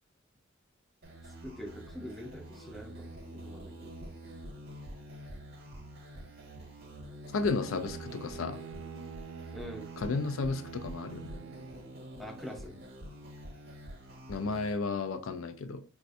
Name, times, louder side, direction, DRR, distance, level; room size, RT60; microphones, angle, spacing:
sound 1, 1.0-14.7, right 1 dB, 55° right, 0.8 m, -47 dB
voice 1, 1.4-3.9 9.5-9.9 12.2-12.8, equal, ahead, 0.5 m, -44 dB
voice 2, 7.3-8.6 10.0-11.3 14.3-15.8, left 4 dB, 85° left, 0.4 m, -33 dB
Bowed string instrument, 7.4-12.3, right 7 dB, 70° right, 0.3 m, -46 dB
4.1 x 2.3 x 2.6 m
head